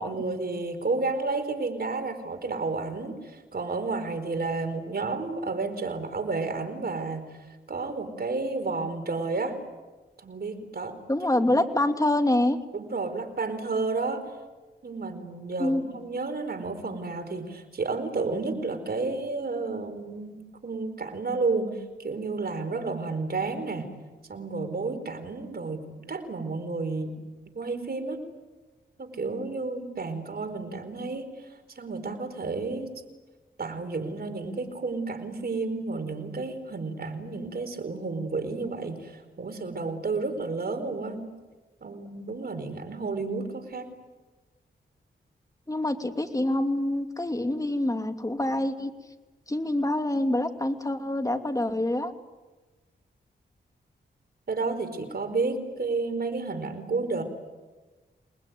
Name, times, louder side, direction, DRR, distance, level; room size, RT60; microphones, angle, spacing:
voice 1, 0.0-7.2 7.7-9.6 10.2-11.0 12.7-14.3 14.8-23.9 24.3-27.2 27.5-28.2 29.0-31.3 31.7-32.9 33.6-41.2 41.8-43.9 54.5-57.2, right 3 dB, 55° right, 8 dB, 4.6 m, -31 dB
voice 2, 11.1-12.6 15.6-15.8 45.7-48.9 49.5-52.1, left 1 dB, 15° left, 6 dB, 2.8 m, -26 dB
28.5 x 20.5 x 9.4 m, 1.2 s
cardioid pair, 55°, 19 cm